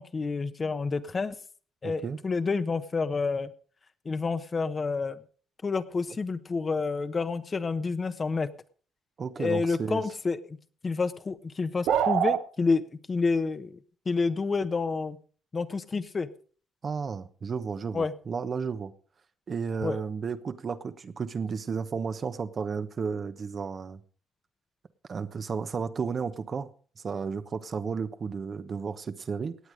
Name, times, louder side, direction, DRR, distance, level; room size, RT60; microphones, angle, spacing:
voice 1, 0.0-1.3 1.8-3.5 4.0-5.2 5.6-8.5 9.4-10.6 10.8-12.8 13.1-13.8 14.0-15.2 15.5-16.3 17.9-18.1 19.8-20.0, left 4 dB, 35° left, 11 dB, 1.1 m, -29 dB
voice 2, 1.8-2.2 9.2-10.0 16.8-18.9 19.5-24.0 25.1-26.7 27.0-29.6, right 5 dB, 45° right, 10 dB, 1.1 m, -33 dB
sound 1, 11.9-12.4, right 9 dB, 85° right, 1.1 m, -23 dB
18.0 x 8.2 x 5.1 m, 0.42 s
cardioid pair, 90°, 0 cm